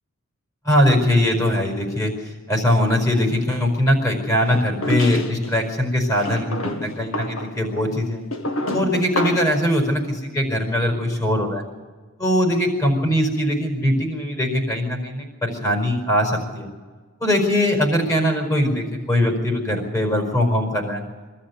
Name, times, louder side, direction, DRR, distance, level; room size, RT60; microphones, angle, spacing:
voice 1, 0.6-2.1 2.5-8.2 8.7-11.6 12.2-16.7 17.2-21.0, left 1 dB, 15° left, 3 dB, 4.9 m, -21 dB
sound 1, 4.5-5.5 6.2-9.6, left 1 dB, 70° left, 1.9 m, -28 dB
24.0 x 13.5 x 8.3 m, 1.4 s
head